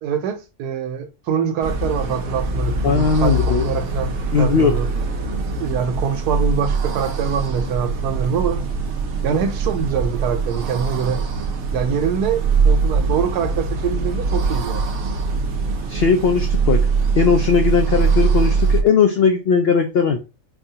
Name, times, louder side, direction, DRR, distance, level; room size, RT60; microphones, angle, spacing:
voice 1, 0.0-4.9 5.6-8.6 9.2-11.2 11.7-14.9, right 7 dB, 90° right, 1.2 m, -24 dB
sound 1, 1.6-18.8, right 4 dB, 60° right, 0.8 m, -22 dB
voice 2, 2.8-3.6 4.3-4.7 15.9-16.8 17.2-20.2, left 5 dB, 80° left, 0.5 m, -18 dB
4.5 x 2.4 x 2.7 m
omnidirectional pair, 1.6 m